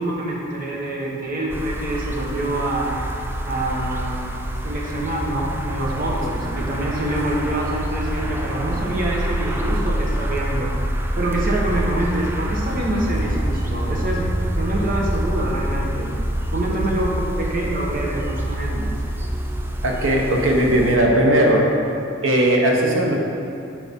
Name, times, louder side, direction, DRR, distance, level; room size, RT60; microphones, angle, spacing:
voice 1, 0.0-3.0 3.4-4.2 4.6-10.7 11.2-14.3 14.6-16.1 16.5-19.0, right 1 dB, 45° right, -3 dB, 1.1 m, -26 dB
sound 1, 1.5-21.0, right 1 dB, 10° right, 0.4 m, -26 dB
voice 2, 19.8-21.7 22.2-23.2, right 1 dB, 80° right, 0 dB, 1.0 m, -17 dB
6.4 x 4.4 x 5.4 m, 2.6 s
head